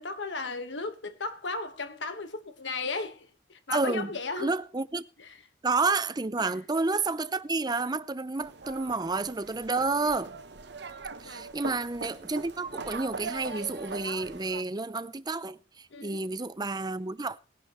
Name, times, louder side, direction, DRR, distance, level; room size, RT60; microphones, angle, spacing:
voice 1, 0.0-4.6 5.2-5.4 6.4-6.6 11.2-11.5 15.9-16.2, left 3 dB, 75° left, 1.6 m, -36 dB
voice 2, 3.7-4.1 4.4-5.1 5.6-10.3 11.2-17.4, right 3 dB, 20° right, 0.6 m, -30 dB
sound 1, 8.4-14.6, right 4 dB, 65° right, 1.0 m, -41 dB
19.5 x 11.0 x 3.2 m
head